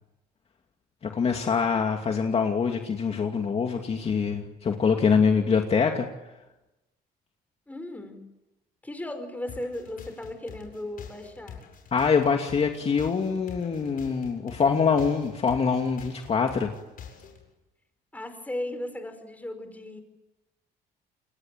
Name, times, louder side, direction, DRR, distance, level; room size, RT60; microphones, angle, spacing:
voice 1, 1.0-6.1 11.9-16.7, left 5 dB, 35° left, 3 dB, 2.5 m, -24 dB
voice 2, 7.7-8.2 8.8-11.6 18.1-20.0, left 1 dB, 10° left, 8 dB, 5.1 m, -36 dB
sound 1, 9.5-17.4, left 7 dB, 55° left, 7.6 m, -46 dB
29.5 x 21.0 x 9.2 m, 1.0 s
cardioid pair, 110°, 17 cm